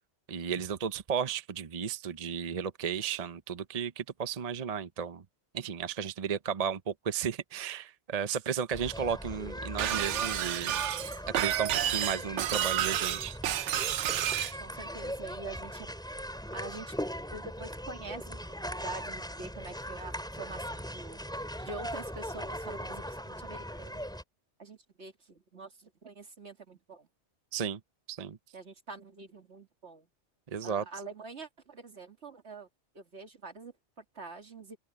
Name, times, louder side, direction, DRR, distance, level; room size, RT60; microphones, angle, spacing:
voice 1, 0.3-5.2 5.5-10.7 11.3-13.3 27.5-27.8 28.1-28.4 30.5-30.8, right 7 dB, 40° right, 0.8 m, -34 dB
sound 1, 8.7-24.2, equal, 5° left, 3.7 m, -40 dB
Shatter, 9.8-14.6, right 11 dB, 85° right, 1.0 m, -30 dB
voice 2, 14.2-15.9 16.5-16.9 17.3-21.2 21.6-24.1 24.6-27.1 28.5-30.1 30.6-32.7 32.9-34.8, right 3 dB, 70° right, 2.6 m, -45 dB
open air
omnidirectional pair, 1.2 m